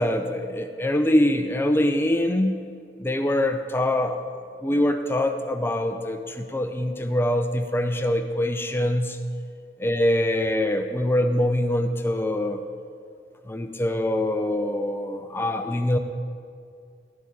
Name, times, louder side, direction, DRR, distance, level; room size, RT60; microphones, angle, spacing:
voice 1, 0.0-2.6 3.0-4.2 4.6-9.2 9.8-12.6 13.5-16.0, left 1 dB, 15° left, 7 dB, 0.5 m, -24 dB
12.5 x 10.5 x 4.0 m, 2.3 s
head